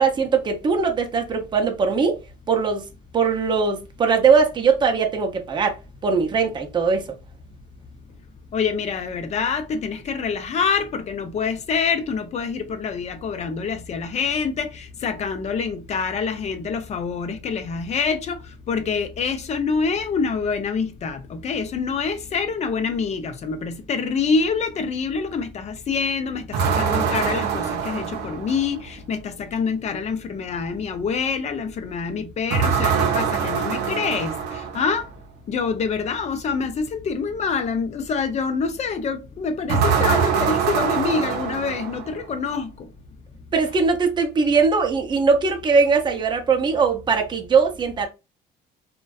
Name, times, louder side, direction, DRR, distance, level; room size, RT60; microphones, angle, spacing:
voice 1, 0.0-2.2 2.5-2.9 3.1-5.8 6.0-7.1 43.5-48.1, right 5 dB, 25° right, 0.5 m, -20 dB
voice 2, 8.5-18.4 18.7-35.0 35.5-42.9, left 5 dB, 40° left, 0.4 m, -26 dB
sound 1, 26.5-28.9 32.5-35.0 39.7-42.3, right 6 dB, 75° right, 0.6 m, -23 dB
2.5 x 2.2 x 2.3 m
cardioid pair, 110°, 17 cm